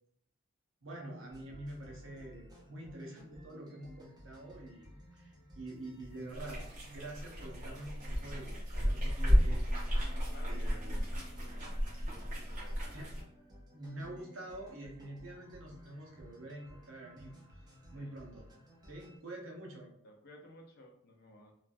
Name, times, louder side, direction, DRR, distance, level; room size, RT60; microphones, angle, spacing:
voice 1, 0.8-4.9 5.1-6.6 6.9-10.0 10.4-11.0 12.9-13.1 13.7-17.4 17.9-18.5 18.9-19.9, right 1 dB, 70° right, 0 dB, 0.7 m, -46 dB
sound 1, 1.3-19.2, equal, 20° right, 0.5 m, -56 dB
sound 2, 6.3-13.2, equal, 40° right, 1.0 m, -33 dB
voice 2, 10.1-11.8 12.1-12.8 17.9-18.1 20.0-21.5, left 2 dB, 50° left, 1 dB, 0.5 m, -56 dB
3.0 x 2.3 x 2.5 m, 0.69 s
head